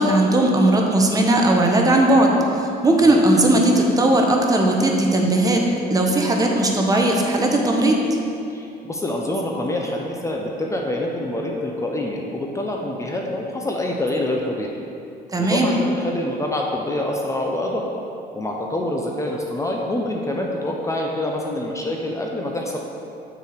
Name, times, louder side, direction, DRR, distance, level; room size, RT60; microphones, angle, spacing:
voice 1, 0.0-5.6 5.9-8.0 15.3-15.7, right 1 dB, 20° right, 0 dB, 1.0 m, -17 dB
voice 2, 8.5-14.7 15.4-17.8 18.3-22.8, left 1 dB, 20° left, 0 dB, 0.7 m, -26 dB
6.4 x 4.8 x 6.6 m, 2.6 s
cardioid pair, 110°, 17 cm